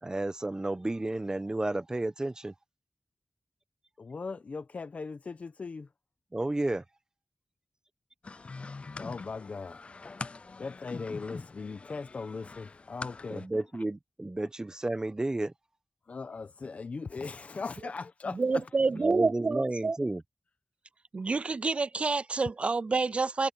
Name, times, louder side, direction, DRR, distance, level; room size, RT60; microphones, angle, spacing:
voice 1, 0.0-2.5 6.3-6.8 13.3-15.5 18.9-20.2, right 2 dB, 30° right, 1.3 m, -32 dB
voice 2, 4.0-5.9 9.0-9.9 10.6-13.5 16.1-18.6, left 4 dB, 80° left, 1.2 m, -39 dB
sound 1, 8.2-13.5, left 3 dB, 60° left, 0.4 m, -43 dB
voice 3, 18.3-20.0 21.1-23.5, right 4 dB, 60° right, 0.4 m, -28 dB
wide cardioid pair, 65°, 2 cm